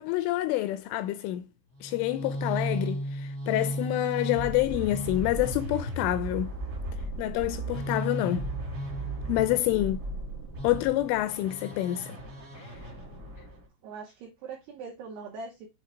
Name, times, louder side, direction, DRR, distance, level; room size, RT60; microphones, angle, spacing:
voice 1, 0.0-1.5 1.8-6.5 7.2-8.5 9.3-10.0 10.6-12.2 12.6-12.7, left 15 dB, 85° left, 2.8 m, -27 dB
sound 1, 1.8-13.6, right 1 dB, 55° right, 1.0 m, -35 dB
voice 2, 9.2-9.8 13.8-15.7, right 4 dB, 80° right, 2.3 m, -42 dB
7.8 x 3.2 x 4.4 m
omnidirectional pair, 5.9 m